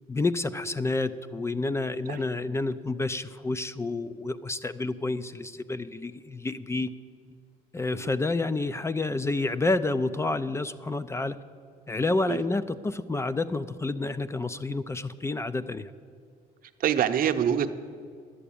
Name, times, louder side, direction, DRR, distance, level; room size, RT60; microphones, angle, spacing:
voice 1, 0.1-6.9 7.7-11.4 11.9-15.9, left 2 dB, 15° left, 14 dB, 0.4 m, -29 dB
voice 2, 16.8-17.7, right 9 dB, 55° right, 8 dB, 0.8 m, -25 dB
11.0 x 8.1 x 8.6 m, 2.3 s
cardioid pair, 110°, 17 cm